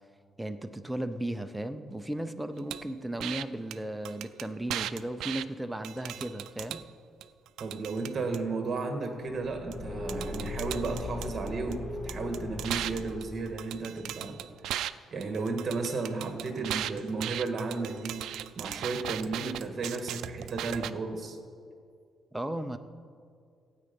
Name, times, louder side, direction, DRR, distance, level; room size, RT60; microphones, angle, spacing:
voice 1, 0.4-6.8 22.3-22.8, right 1 dB, 5° right, 8 dB, 0.6 m, -35 dB
sound 1, 2.7-2.8 3.2-3.4 3.7-3.8 4.0-5.4 5.8-6.8 7.2-8.4 9.7-9.8 10.1-11.7 12.1-14.9 15.2-20.9, right 12 dB, 85° right, 0.3 m, -37 dB
voice 2, 7.6-14.4 15.1-18.2 18.6-21.4, right 3 dB, 40° right, 5 dB, 1.8 m, -33 dB
Car / Engine, 9.3-13.8, left 2 dB, 30° left, 0.9 m, -39 dB
16.0 x 8.9 x 5.4 m, 2.2 s
cardioid pair, 115°, 0 cm